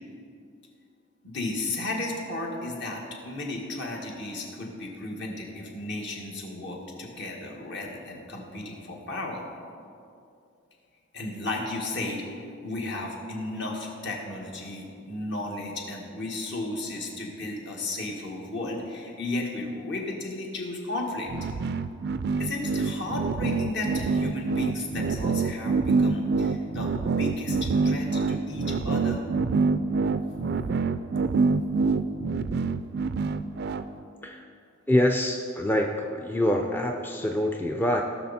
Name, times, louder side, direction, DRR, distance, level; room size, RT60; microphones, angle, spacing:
voice 1, 1.2-9.4 11.1-12.2 12.6-21.3 22.4-29.2, left 2 dB, 60° left, -1 dB, 1.8 m, -34 dB
sound 1, 21.3-33.8, right 4 dB, 55° right, 0.4 m, -26 dB
voice 2, 34.9-38.0, left 1 dB, 10° left, 2 dB, 0.5 m, -25 dB
17.5 x 6.3 x 4.3 m, 2.5 s
head